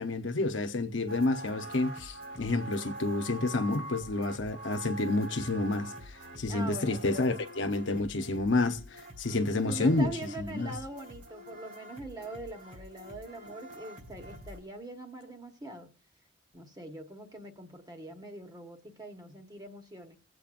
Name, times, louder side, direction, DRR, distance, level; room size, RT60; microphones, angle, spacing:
voice 1, 0.0-5.9 6.4-8.8 9.2-10.1 10.4-10.7, left 2 dB, 80° left, 0.9 m, -29 dB
sound 1, 1.1-14.6, right 1 dB, 70° right, 4.1 m, -45 dB
voice 2, 6.5-7.3 9.6-15.9 16.5-20.2, right 2 dB, 20° right, 1.3 m, -43 dB
21.0 x 7.9 x 2.5 m
head